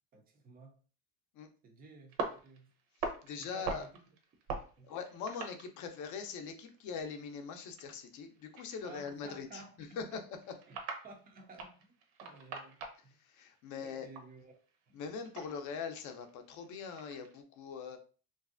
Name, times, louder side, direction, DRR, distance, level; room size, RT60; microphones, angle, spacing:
voice 1, 0.1-0.8 1.6-2.7 3.4-3.9 4.8-4.9 8.8-10.2 10.7-10.8 11.0-12.0 12.2-13.1 13.8-14.5 14.9-15.0, right 3 dB, 25° right, 0.3 m, -54 dB
sound 1, 2.1-6.2 6.5-13.2 13.5-17.4, right 4 dB, 80° right, 0.8 m, -44 dB
voice 2, 3.0-3.9 4.8-9.6 10.0-10.2 13.2-14.1 14.9-18.0, left 6 dB, 45° left, 0.5 m, -42 dB
3.1 x 2.6 x 2.4 m
cardioid pair, 160°, 41 cm